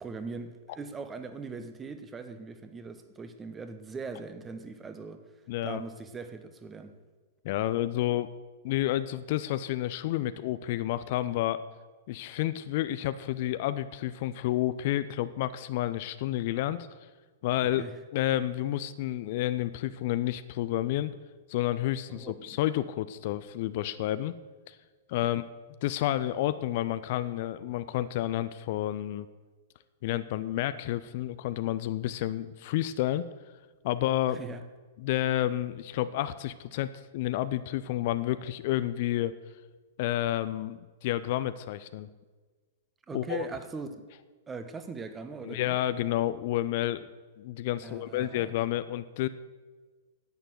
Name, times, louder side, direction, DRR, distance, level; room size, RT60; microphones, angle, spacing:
voice 1, 0.0-5.2 5.6-7.0 17.6-18.0 22.1-22.6 25.2-25.4 34.3-34.6 43.1-44.0 44.5-45.8 47.8-48.5, right 4 dB, 15° right, 1.1 m, -41 dB
voice 2, 5.5-5.8 7.4-8.3 8.6-11.6 12.1-16.9 17.4-17.8 18.1-21.1 21.5-24.3 24.7-24.8 25.1-25.4 25.8-29.3 30.0-33.2 33.8-34.4 35.0-39.3 40.0-42.1 43.1-43.4 45.4-47.1 47.4-49.3, left 13 dB, 45° left, 0.5 m, -30 dB
10.5 x 8.9 x 7.9 m
figure-of-eight pair, 105°, 0 cm